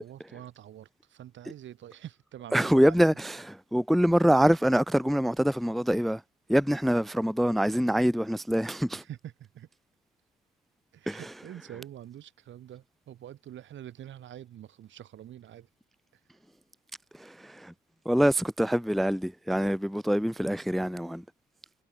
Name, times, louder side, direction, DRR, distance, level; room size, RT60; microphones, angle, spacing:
voice 1, 0.0-3.2 8.9-9.7 10.9-15.7 16.1-16.2, right 11 dB, 70° right, 3.0 m, -46 dB
voice 2, 2.5-6.2 6.5-9.0 11.1-11.2 17.1-17.7 18.1-21.2, equal, ahead, 0.4 m, -25 dB
cardioid pair, 90°, 20 cm